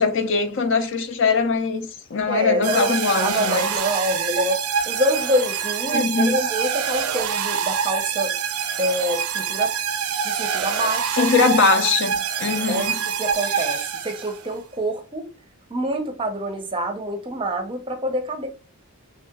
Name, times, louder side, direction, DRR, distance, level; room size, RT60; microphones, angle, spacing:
voice 1, 0.0-3.7 5.9-6.4 11.2-13.0, left 4 dB, 55° left, 0.5 m, -21 dB
voice 2, 2.3-8.4 8.8-9.7 10.2-11.3 12.7-15.3 15.7-18.5, equal, 25° right, 0.6 m, -26 dB
sound 1, 2.6-14.4, right 7 dB, 85° right, 0.5 m, -25 dB
3.1 x 2.8 x 3.5 m
head